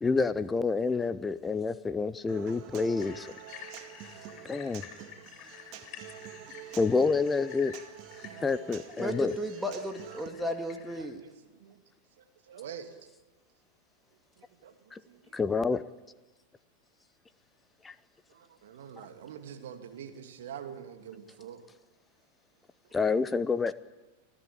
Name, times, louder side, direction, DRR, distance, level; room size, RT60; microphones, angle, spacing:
voice 1, 0.0-3.3 4.4-4.9 6.8-7.7 8.4-9.3 14.9-15.0 15.3-15.8 17.8-17.9 22.9-23.7, left 4 dB, 15° left, 15 dB, 0.7 m, -28 dB
Human voice / Acoustic guitar, 2.3-10.3, right 11 dB, 40° right, 2.1 m, -47 dB
sound 1, 3.0-11.0, left 8 dB, 35° left, 7.2 m, -50 dB
voice 2, 9.0-11.2, equal, 5° right, 4 dB, 2.0 m, -34 dB
voice 3, 10.9-11.8 12.2-12.9 14.4-15.4 18.3-21.6 22.9-23.0, right 8 dB, 55° right, 6 dB, 2.6 m, -46 dB
26.5 x 15.5 x 8.7 m, 1.1 s
figure-of-eight pair, 90°, 0 cm